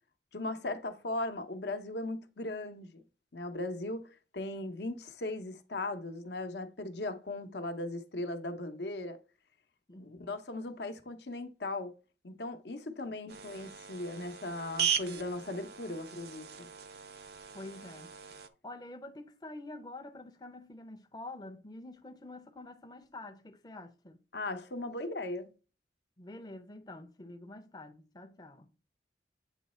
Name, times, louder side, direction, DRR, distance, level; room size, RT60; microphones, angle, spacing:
voice 1, 0.3-3.0 3.3-4.1 4.3-9.2 10.0-12.0 12.2-16.7 24.3-25.5, left 2 dB, 75° left, 0.8 m, -38 dB
voice 2, 9.9-10.2 17.5-18.1 18.6-24.2 26.2-28.7, left 2 dB, 20° left, 0.5 m, -47 dB
sound 1, 13.3-18.5, right 8 dB, 65° right, 0.6 m, -38 dB
8.2 x 3.1 x 4.2 m
head